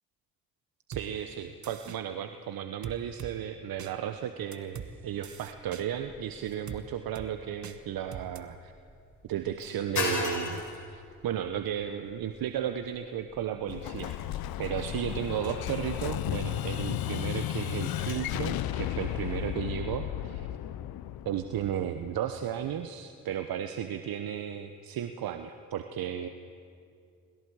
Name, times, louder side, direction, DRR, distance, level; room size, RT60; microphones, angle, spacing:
sound 1, 0.9-1.1 1.6-2.0 2.8-3.3 3.8-3.9 4.5-4.9 5.2-5.8 6.7-6.8 7.2-7.3 7.6-7.8 8.1-8.4, right 8 dB, 50° right, 1.4 m, -41 dB
voice 1, 0.9-8.7 9.2-10.6 10.9-14.1 14.6-20.5 21.2-26.3, right 10 dB, 65° right, 8 dB, 1.0 m, -34 dB
sound 2, 5.2-15.3, left 3 dB, 50° left, 6.6 m, -40 dB
Explosion, 13.7-22.3, left 12 dB, 70° left, 0.8 m, -34 dB
26.5 x 26.0 x 4.9 m, 2.4 s
supercardioid pair, 55°, 38 cm